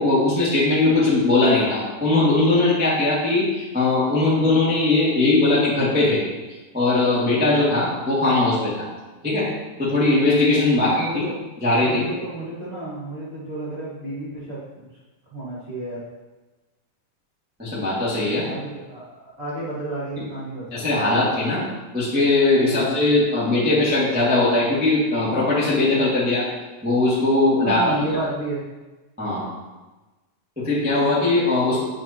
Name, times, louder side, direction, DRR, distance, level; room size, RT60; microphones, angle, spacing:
voice 1, 0.0-6.2 6.7-8.9 9.2-9.5 9.8-11.2 11.6-12.0 17.6-18.5 20.2-20.3 20.7-21.6 21.9-26.4 26.8-27.8 29.2-29.5 30.6-31.8, left 2 dB, 5° right, -8 dB, 1.0 m, -20 dB
voice 2, 7.5-8.0 10.6-11.4 11.8-14.8 15.3-16.0 18.4-20.8 22.7-22.9 27.6-28.6, right 1 dB, 25° right, -9 dB, 1.4 m, -32 dB
9.3 x 6.2 x 2.9 m, 1.2 s
omnidirectional pair, 4.0 m